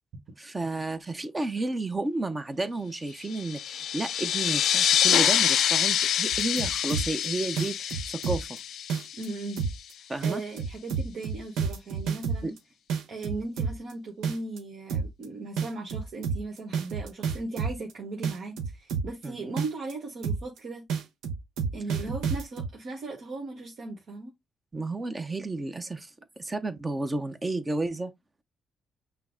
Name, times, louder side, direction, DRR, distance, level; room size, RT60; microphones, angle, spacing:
voice 1, 0.4-8.6 10.1-10.4 12.4-12.5 19.2-19.4 24.7-26.1 26.4-28.1, right 2 dB, 25° right, 0.7 m, -32 dB
sound 1, 3.3-9.5, left 9 dB, 70° left, 0.3 m, -26 dB
sound 2, 6.3-7.2 7.6-8.6 8.9-9.3 9.6-9.9 10.2-12.6 12.9-13.9 14.2-14.6 14.9-15.2 15.6-17.9 18.2-19.2 19.6-19.9 20.2-20.6 20.9-22.7, right 6 dB, 85° right, 0.9 m, -30 dB
voice 2, 9.2-9.6 10.0-12.6 13.1-20.9 21.7-24.3, right 3 dB, 65° right, 1.2 m, -37 dB
5.7 x 2.0 x 3.7 m
cardioid pair, 90°, 0 cm